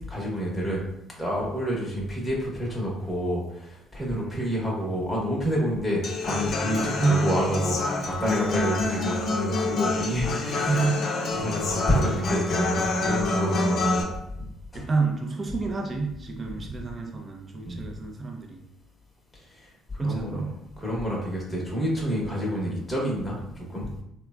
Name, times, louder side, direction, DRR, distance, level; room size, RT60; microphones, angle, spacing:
voice 1, 0.1-0.8 1.2-10.9 11.3-14.1 14.7-14.9 17.7-17.9 19.5-19.6 19.9-20.5 20.8-23.9, equal, 10° left, -4 dB, 1.0 m, -28 dB
voice 2, 4.1-4.6 6.8-7.4 10.7-11.0 14.7-18.6 20.0-20.6, right 4 dB, 35° right, 2 dB, 0.5 m, -28 dB
Human voice / Acoustic guitar, 6.0-14.0, left 3 dB, 55° left, 0.5 m, -27 dB
3.2 x 2.1 x 2.3 m, 0.80 s
supercardioid pair, 80°, 0 cm